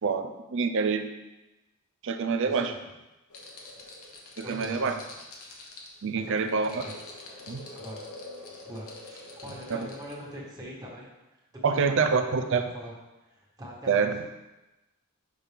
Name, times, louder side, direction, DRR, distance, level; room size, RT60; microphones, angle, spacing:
voice 1, 0.0-1.1 2.0-2.7 4.4-4.9 6.0-6.8 7.5-7.7 9.7-9.9 11.6-12.6 13.9-14.2, right 5 dB, 60° right, 8 dB, 0.5 m, -26 dB
voice 2, 2.4-2.7 4.4-5.0 6.1-6.5 6.8-6.9 7.7-8.0 8.6-11.1 11.7-12.9 13.3-14.3, equal, 20° right, -5 dB, 1.5 m, -42 dB
sound 1, 3.3-10.4, left 2 dB, 80° left, 1.1 m, -45 dB
6.2 x 5.7 x 3.5 m, 1.0 s
head